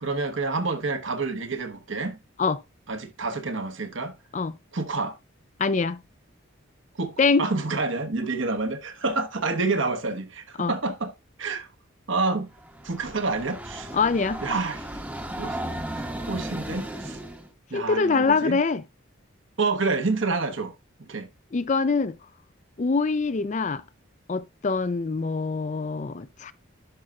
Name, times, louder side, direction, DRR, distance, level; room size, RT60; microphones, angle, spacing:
voice 1, 0.0-2.2 2.9-4.2 4.7-5.2 6.9-11.1 11.4-11.7 12.1-12.5 12.8-13.9 14.4-14.9 15.4-15.6 15.9-17.2 17.7-18.6 19.6-20.7 21.1-21.3, right 3 dB, 70° right, 1.1 m, -28 dB
voice 2, 5.6-6.0 7.2-7.5 10.6-10.7 13.9-14.4 17.7-18.8 21.5-22.2 22.8-23.8 24.3-26.5, left 4 dB, 35° left, 0.4 m, -24 dB
Train, 12.6-17.5, right 1 dB, 10° right, 0.8 m, -35 dB
11.0 x 5.5 x 2.4 m
head